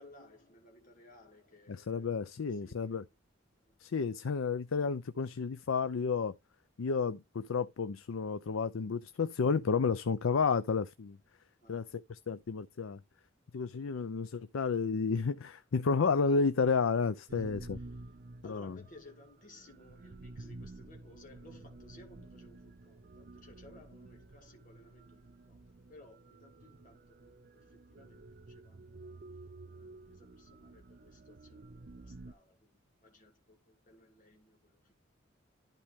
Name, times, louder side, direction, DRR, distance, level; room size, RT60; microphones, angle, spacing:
voice 1, 0.0-2.2 2.5-3.2 3.6-3.8 11.6-11.9 17.3-18.1 18.4-25.6 25.9-29.2 29.6-34.9, left 1 dB, 40° left, 2.1 m, -59 dB
voice 2, 1.7-3.0 3.8-6.4 6.8-11.2 11.7-13.0 13.5-17.8 18.4-18.8, left 5 dB, 85° left, 0.5 m, -31 dB
sound 1, 17.3-32.3, right 2 dB, 50° right, 0.5 m, -51 dB
11.5 x 4.2 x 3.6 m
head